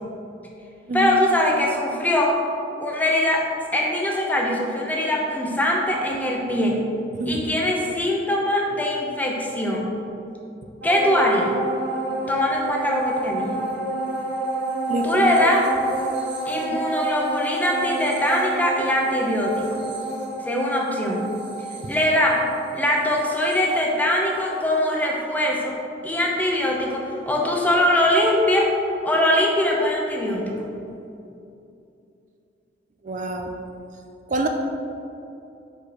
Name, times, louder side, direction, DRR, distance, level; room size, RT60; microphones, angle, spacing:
voice 1, 0.9-2.4 2.8-3.5 3.7-6.9 7.2-9.9 10.8-11.5 12.3-13.6 15.0-15.6 16.5-19.7 20.5-21.3 21.9-22.4 22.7-25.7 26.0-28.7 29.0-30.6, left 1 dB, 10° left, -1 dB, 0.8 m, -22 dB
voice 2, 7.2-7.6 14.9-15.3 16.7-16.8 21.8-21.9 33.0-33.5 34.3-34.5, right 1 dB, 45° right, 3 dB, 0.4 m, -26 dB
sound 1, 10.8-24.5 24.9-25.0, right 2 dB, 80° right, 1.3 m, -29 dB
5.3 x 4.0 x 6.0 m, 2.7 s
head